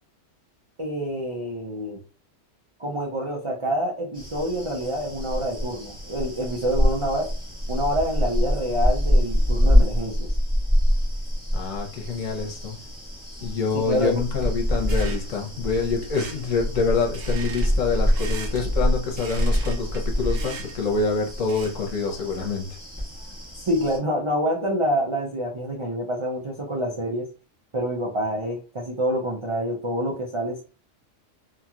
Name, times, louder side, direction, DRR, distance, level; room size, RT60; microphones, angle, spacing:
voice 1, 0.8-2.0 2.8-7.3 7.7-10.3 13.7-14.2 23.7-27.3 27.7-30.6, equal, 50° right, -2 dB, 0.3 m, -27 dB
sound 1, 4.1-24.0, equal, 5° right, 1.0 m, -25 dB
voice 2, 11.5-12.8 13.4-22.7, left 4 dB, 75° left, 1 dB, 1.2 m, -26 dB
sound 2, 14.8-21.9, right 4 dB, 75° right, 1.0 m, -41 dB
2.8 x 2.8 x 2.4 m, 0.34 s
omnidirectional pair, 1.4 m